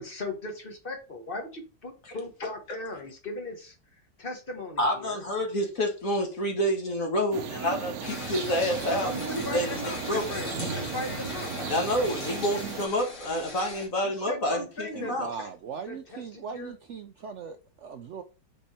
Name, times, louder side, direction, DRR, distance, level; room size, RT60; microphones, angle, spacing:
voice 1, 0.0-3.7 4.2-5.2 9.0-11.5 14.0-15.5 15.9-16.7, left 2 dB, 30° left, 1.5 m, -38 dB
voice 2, 4.8-10.3 11.7-15.3, equal, 45° left, 2.0 m, -28 dB
sound 1, 7.3-12.9, right 6 dB, 60° right, 1.1 m, -36 dB
sound 2, 8.0-13.9, left 3 dB, 85° left, 3.1 m, -39 dB
voice 3, 14.9-18.2, right 6 dB, 85° right, 0.6 m, -39 dB
5.4 x 5.3 x 4.3 m
omnidirectional pair, 2.0 m